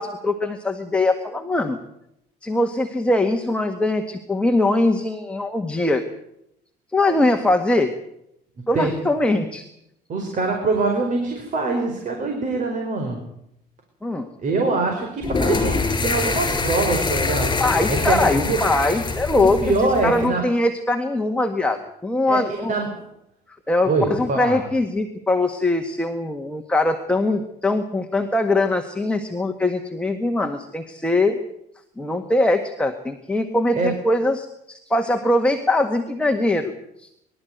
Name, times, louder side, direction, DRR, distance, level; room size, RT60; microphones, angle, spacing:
voice 1, 0.0-1.8 2.4-6.0 6.9-7.9 8.7-9.7 14.0-14.3 17.6-19.7 20.0-22.7 23.7-31.4 32.0-36.7 37.0-37.1, left 2 dB, 5° left, 4 dB, 1.8 m, -22 dB
voice 2, 10.1-13.2 14.4-17.6 17.9-18.6 19.3-20.4 22.3-22.4 22.7-23.0 23.8-24.6 33.7-33.9, right 3 dB, 50° right, 3 dB, 5.0 m, -23 dB
sound 1, 15.2-20.3, left 4 dB, 25° left, 6.5 m, -24 dB
24.0 x 13.0 x 9.4 m, 0.79 s
cardioid pair, 110°, 17 cm